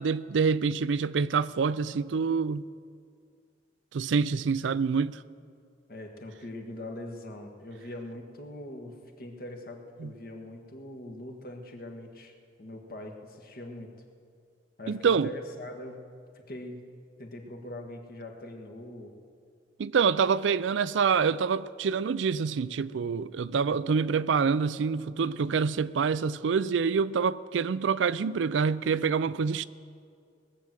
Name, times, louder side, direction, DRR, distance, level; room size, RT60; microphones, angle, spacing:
voice 1, 0.0-2.7 3.9-5.2 10.0-10.1 14.9-15.3 19.8-29.7, right 5 dB, 90° right, 0.4 m, -26 dB
voice 2, 5.9-13.9 14.8-16.0 16.5-16.8 17.2-19.1, left 1 dB, 55° left, 1.6 m, -42 dB
20.0 x 7.7 x 7.4 m
head